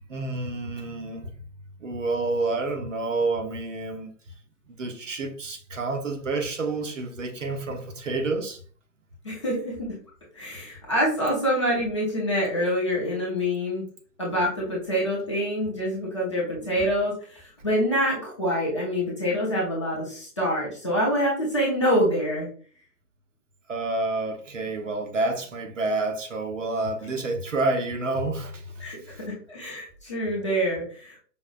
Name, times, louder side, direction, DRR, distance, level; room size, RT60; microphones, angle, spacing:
voice 1, 0.1-1.4 1.8-4.1 4.7-8.6 23.7-29.1, right 3 dB, 50° right, 0.7 m, -29 dB
voice 2, 9.2-10.0 10.3-13.8 14.2-22.5 28.8-31.2, equal, 20° left, 0.6 m, -26 dB
5.1 x 2.3 x 2.5 m
figure-of-eight pair, 140°, 49 cm